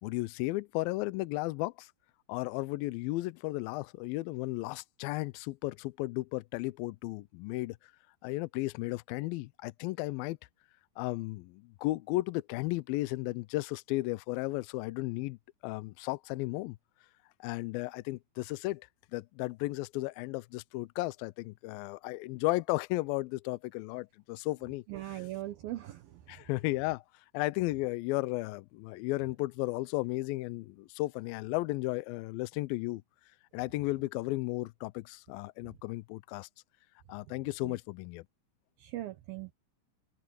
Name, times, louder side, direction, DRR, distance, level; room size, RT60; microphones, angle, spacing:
voice 1, 0.0-1.9 2.3-7.8 8.2-10.4 11.0-16.8 17.4-25.2 26.3-27.0 27.3-33.0 33.5-36.5 37.1-38.2, left 20 dB, 85° left, 2.1 m, -34 dB
voice 2, 24.9-26.2 37.6-37.7 38.8-39.5, right 15 dB, 70° right, 2.7 m, -40 dB
omnidirectional pair, 4.8 m